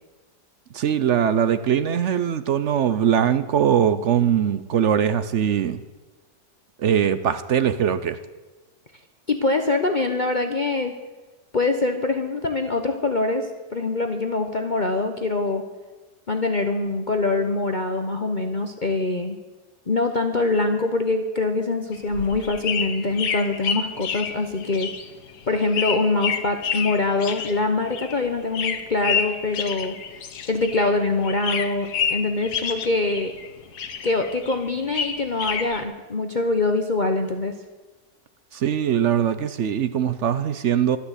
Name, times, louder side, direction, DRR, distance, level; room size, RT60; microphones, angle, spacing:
voice 1, 0.7-5.8 6.8-8.2 38.5-41.0, right 9 dB, 60° right, 13 dB, 0.8 m, -21 dB
voice 2, 9.3-11.0 11.5-15.6 16.3-19.4 19.9-24.9 25.5-30.0 30.5-33.3 34.0-37.5, left 3 dB, 35° left, 5 dB, 1.0 m, -24 dB
sound 1, 21.9-31.0 31.2-33.5 33.8-35.8, left 6 dB, 90° left, 1.7 m, -29 dB
12.5 x 11.5 x 8.1 m, 1.2 s
omnidirectional pair, 1.7 m